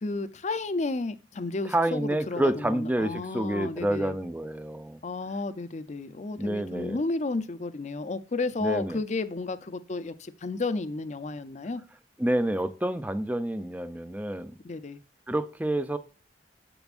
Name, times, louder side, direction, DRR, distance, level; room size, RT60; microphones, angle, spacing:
voice 1, 0.0-4.1 5.0-11.8 14.6-15.0, left 3 dB, 40° left, 0.5 m, -32 dB
voice 2, 1.6-5.0 6.4-7.0 8.6-9.0 12.2-14.6 15.3-16.0, right 1 dB, 10° right, 0.5 m, -28 dB
7.0 x 6.9 x 2.4 m
head